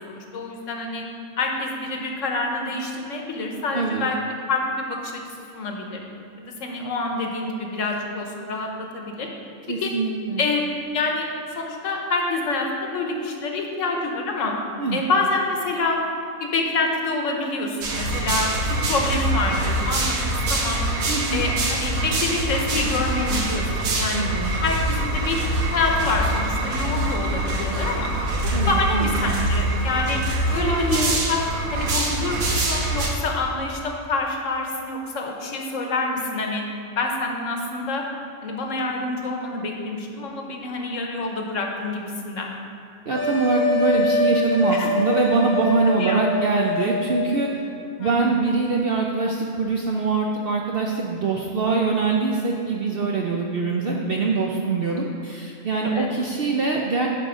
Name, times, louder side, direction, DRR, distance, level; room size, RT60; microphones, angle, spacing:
voice 1, 0.1-1.0 1.4-4.2 4.5-6.0 6.4-9.3 9.8-9.9 10.4-14.5 14.9-16.0 16.4-20.8 21.3-24.3 24.6-25.4 25.7-28.1 28.4-30.2 30.5-31.5 31.7-36.6 37.0-38.0 38.4-42.5 44.7-44.9 46.0-46.2 48.0-48.3 55.8-56.1, left 3 dB, 65° left, 2 dB, 1.1 m, -27 dB
voice 2, 3.7-4.1 9.7-10.5 14.8-15.0 21.1-21.4 24.1-24.5 28.5-29.5 30.5-31.2 43.1-47.5 48.0-57.1, right 4 dB, 60° right, 0 dB, 0.6 m, -23 dB
sound 1, 17.8-33.1, right 1 dB, 80° right, 1.5 m, -24 dB
sound 2, 43.1-47.5, left 2 dB, 10° left, 0.6 m, -24 dB
10.0 x 3.9 x 5.0 m, 2.6 s
omnidirectional pair, 1.5 m